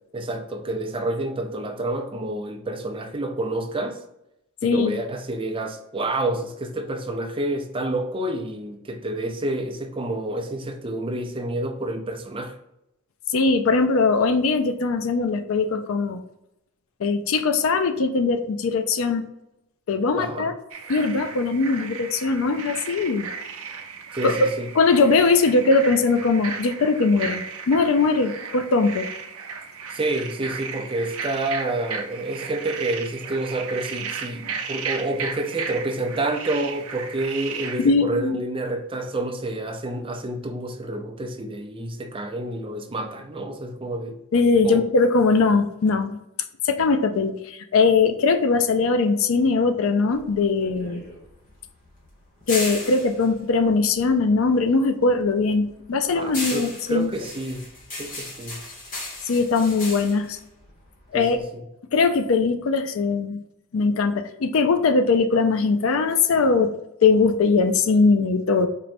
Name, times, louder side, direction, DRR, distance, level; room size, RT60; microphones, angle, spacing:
voice 1, 0.1-4.0 4.6-12.6 20.1-20.5 24.1-24.7 29.9-44.2 44.6-44.8 56.1-57.7 58.0-58.6 61.1-61.5, right 2 dB, 25° right, 4 dB, 0.5 m, -29 dB
voice 2, 4.6-5.0 13.3-16.2 17.0-19.2 19.9-20.5 20.9-23.3 24.2-24.3 24.8-29.1 37.8-38.4 44.3-46.1 46.6-51.0 52.5-57.1 59.3-60.4 61.1-61.4 61.9-63.4 63.7-66.7 67.0-68.7, left 4 dB, 70° left, 8 dB, 0.4 m, -20 dB
sound 1, 20.7-37.9, right 5 dB, 85° right, 0.6 m, -35 dB
sound 2, 50.1-54.6 55.0-61.4, left 2 dB, 40° left, 1.3 m, -36 dB
4.5 x 3.0 x 2.6 m, 0.85 s
head